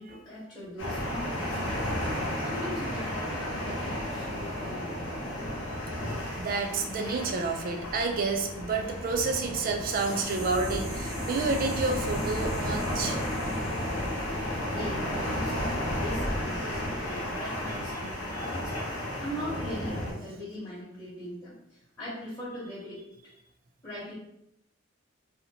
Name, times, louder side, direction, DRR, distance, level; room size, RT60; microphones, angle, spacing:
voice 1, 0.0-2.1 2.4-5.4 14.8-23.0 23.8-24.1, equal, 20° left, -10 dB, 0.8 m, -40 dB
sound 1, 0.8-20.1, left 1 dB, 65° left, 0.7 m, -33 dB
voice 2, 6.4-13.2 18.3-18.5, right 4 dB, 45° right, 4 dB, 0.3 m, -30 dB
sound 2, 9.6-15.2 15.5-15.6, right 2 dB, 75° right, 0.8 m, -47 dB
2.7 x 2.0 x 2.7 m, 0.80 s
head